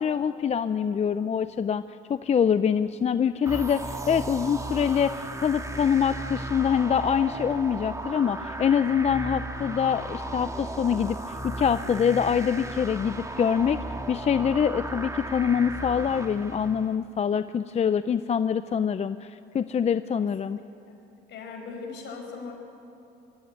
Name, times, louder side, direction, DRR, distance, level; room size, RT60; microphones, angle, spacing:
voice 1, 0.0-1.8 2.1-13.8 14.1-20.6, left 7 dB, 35° left, 13 dB, 0.5 m, -25 dB
sound 1, 3.5-17.0, right 2 dB, 15° right, 1.7 m, -35 dB
voice 2, 21.3-22.5, left 4 dB, 65° left, 2 dB, 5.2 m, -38 dB
23.0 x 13.5 x 9.2 m, 2.8 s
supercardioid pair, 85°, 20 cm